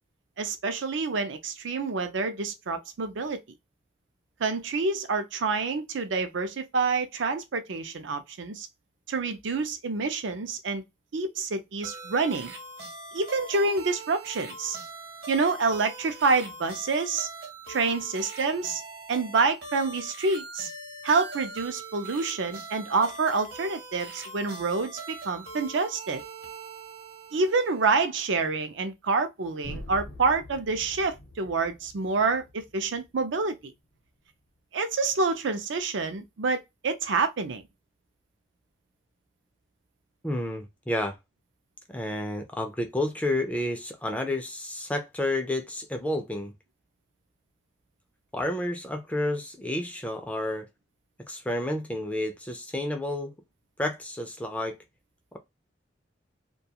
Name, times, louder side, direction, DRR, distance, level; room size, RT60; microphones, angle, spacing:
voice 1, 0.4-3.4 4.4-8.7 9.1-10.8 11.1-12.5 13.1-14.8 15.3-17.3 17.7-18.8 19.1-20.7 21.0-26.2 27.3-33.7 34.7-37.6, right 4 dB, 75° right, 0.5 m, -27 dB
sound 1, 11.8-28.0, right 3 dB, 55° right, 0.8 m, -42 dB
sound 2, 29.6-33.6, left 1 dB, 80° left, 0.7 m, -44 dB
voice 2, 40.2-41.2 41.9-46.5 48.3-50.7 51.3-53.3 53.8-54.8, left 1 dB, 5° left, 0.4 m, -30 dB
2.3 x 2.3 x 2.7 m
head